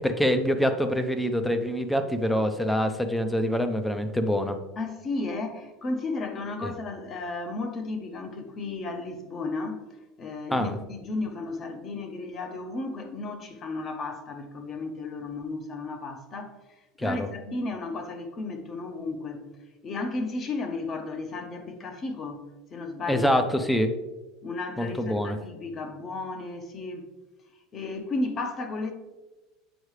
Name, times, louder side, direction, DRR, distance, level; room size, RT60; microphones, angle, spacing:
voice 1, 0.0-4.6 6.6-6.7 10.5-10.8 17.0-17.3 23.1-23.9 24.8-25.4, equal, 5° left, 0.5 m, -25 dB
voice 2, 4.8-9.8 10.2-16.6 17.0-19.5 19.8-23.3 23.6-23.7 24.4-27.1 27.7-28.9, left 3 dB, 25° left, 0.8 m, -34 dB
8.1 x 4.6 x 3.2 m
supercardioid pair, 155°, 0 cm